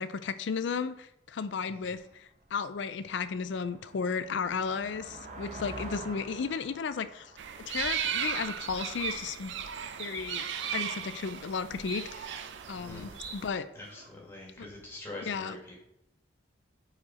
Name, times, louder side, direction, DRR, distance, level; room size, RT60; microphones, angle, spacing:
voice 1, 0.0-7.3 7.7-9.5 10.0-10.5 10.7-13.7 15.2-15.6, left 5 dB, 75° left, 13 dB, 0.4 m, -34 dB
sound 1, 2.0-2.1 2.6-9.1, right 2 dB, 35° right, 0.8 m, -47 dB
sound 2, 7.4-13.5, right 8 dB, 75° right, 0.5 m, -36 dB
sound 3, 9.4-9.5 9.9-10.2 10.6-10.7 11.2-11.5 11.9-12.9 13.2-13.4 13.8-14.2, right 4 dB, 55° right, 1.1 m, -46 dB
voice 2, 12.7-13.2 13.7-15.8, left 2 dB, 10° left, -3 dB, 1.6 m, -44 dB
4.8 x 4.3 x 4.8 m, 0.82 s
head